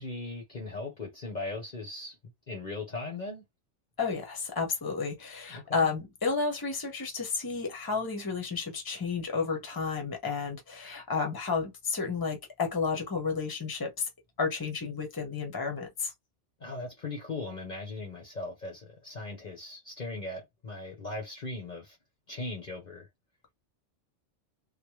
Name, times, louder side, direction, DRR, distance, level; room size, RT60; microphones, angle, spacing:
voice 1, 0.0-2.2 2.5-3.4 5.5-5.9 16.6-22.0 22.3-23.1, left 2 dB, 40° left, 1.0 m, -38 dB
voice 2, 4.0-14.1 14.4-16.1, left 5 dB, 20° left, 0.9 m, -32 dB
3.3 x 2.2 x 3.1 m
omnidirectional pair, 1.2 m